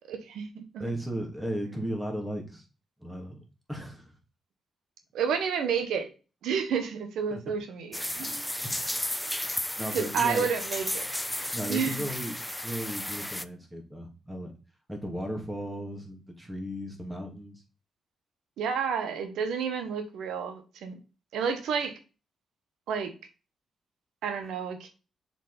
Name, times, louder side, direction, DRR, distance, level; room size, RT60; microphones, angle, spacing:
voice 1, 0.1-0.6 5.1-6.1 6.4-8.4 9.9-11.1 11.7-12.0 18.6-21.0 21.3-22.0 22.9-23.1 24.2-24.9, right 6 dB, 90° right, 7 dB, 1.3 m, -30 dB
voice 2, 0.8-2.6 3.0-3.4 3.7-4.1 7.3-7.4 8.2-8.4 8.6-8.9 9.4-10.5 11.5-12.4 12.6-14.5 14.9-17.6, equal, 10° right, 1 dB, 2.7 m, -36 dB
sound 1, 7.9-13.4, left 1 dB, 5° left, 0.5 m, -33 dB
6.6 x 5.3 x 4.2 m, 0.32 s
cardioid pair, 90°, 0 cm